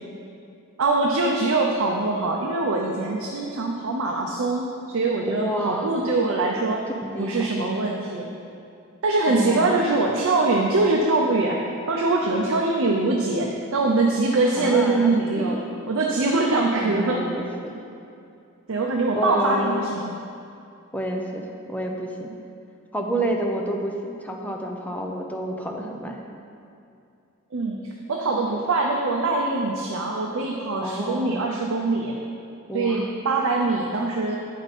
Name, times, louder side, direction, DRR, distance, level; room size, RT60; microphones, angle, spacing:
voice 1, 0.8-4.6 4.9-6.8 7.2-8.3 9.0-11.6 11.9-15.6 15.9-17.2 18.7-20.1 27.5-27.8 28.1-32.2 32.7-34.4, right 3 dB, 65° right, 0 dB, 0.6 m, -23 dB
voice 2, 5.3-5.9 6.9-7.5 9.3-9.8 14.6-15.7 16.8-17.7 19.1-19.8 20.9-22.3 22.9-26.2 30.8-31.5 32.7-33.0, right 1 dB, 5° left, 1 dB, 0.6 m, -29 dB
8.3 x 5.2 x 4.1 m, 2.5 s
head